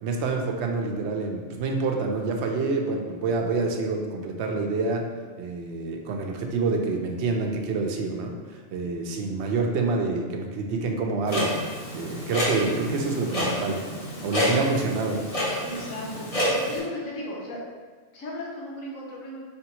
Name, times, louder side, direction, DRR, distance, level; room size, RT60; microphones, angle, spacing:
voice 1, 0.0-5.1 5.4-13.8 14.2-15.2, right 3 dB, 65° right, 2 dB, 0.8 m, -27 dB
Clock, 11.3-16.8, equal, 30° left, 0.9 m, -28 dB
voice 2, 15.6-17.6 18.1-19.4, left 1 dB, 85° left, -4 dB, 1.4 m, -35 dB
4.5 x 3.3 x 2.9 m, 1.5 s
omnidirectional pair, 1.4 m